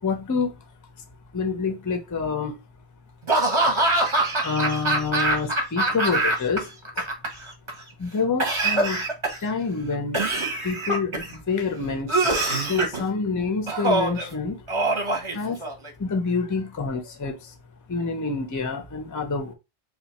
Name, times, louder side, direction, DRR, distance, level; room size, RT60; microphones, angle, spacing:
voice 1, 0.0-0.6 1.3-2.6 4.4-6.7 7.0-7.1 8.0-9.0 9.4-10.2 10.6-14.7 15.3-15.6 16.0-17.5 17.9-19.5, left 4 dB, 25° left, 0.4 m, -27 dB
Laughter / Cough, 3.3-6.6 6.9-7.7 8.4-9.5 10.1-11.3 12.1-13.0 13.7-14.3 14.7-15.9, right 2 dB, 30° right, 0.7 m, -23 dB
2.8 x 2.3 x 4.0 m
omnidirectional pair, 1.1 m